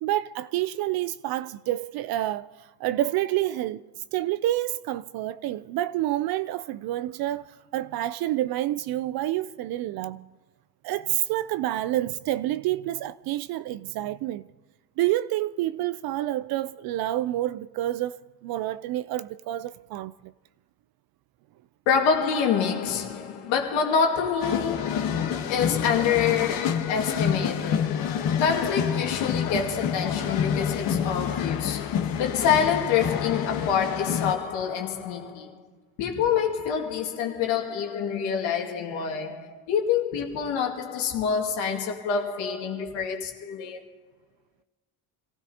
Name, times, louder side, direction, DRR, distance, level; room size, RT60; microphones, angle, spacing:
voice 1, 0.0-2.5 2.8-3.8 4.1-10.3 10.8-14.5 15.0-18.2 18.4-20.3, right 14 dB, 55° right, 0.5 m, -28 dB
voice 2, 21.9-35.7 36.0-43.8, left 7 dB, 85° left, 2.2 m, -27 dB
sound 1, 24.4-34.3, left 8 dB, 45° left, 1.2 m, -28 dB
27.0 x 15.5 x 2.8 m
cardioid pair, 135°, 45 cm